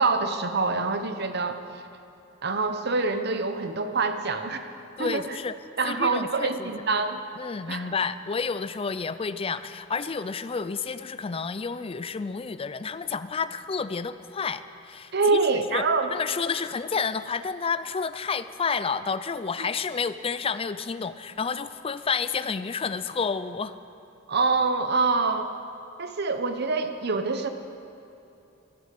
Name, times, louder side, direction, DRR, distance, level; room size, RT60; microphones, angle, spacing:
voice 1, 0.0-1.6 2.4-4.7 5.0-5.4 5.8-7.2 7.7-7.9 15.1-16.1 19.6-19.7 24.3-25.5 26.0-27.5, right 4 dB, 55° right, 8 dB, 1.0 m, -25 dB
voice 2, 5.0-5.5 5.8-6.7 7.4-23.7, left 5 dB, 30° left, 13 dB, 0.4 m, -30 dB
12.5 x 11.0 x 8.5 m, 2.9 s
head